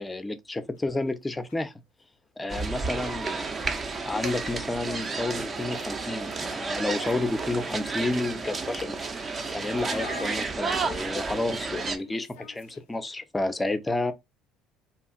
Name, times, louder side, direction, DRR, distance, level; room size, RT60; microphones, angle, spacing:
voice 1, 0.0-1.7 2.4-3.8 4.1-9.2 9.5-14.1, left 2 dB, 15° left, 0.5 m, -31 dB
sound 1, 0.7-0.8 1.4-1.8 3.5-3.6 3.9-4.0 4.2-13.1, left 9 dB, 75° left, 0.3 m, -49 dB
sound 2, 2.5-12.0, right 4 dB, 35° right, 0.5 m, -32 dB
2.9 x 2.4 x 2.4 m
hypercardioid pair, 60°, 0 cm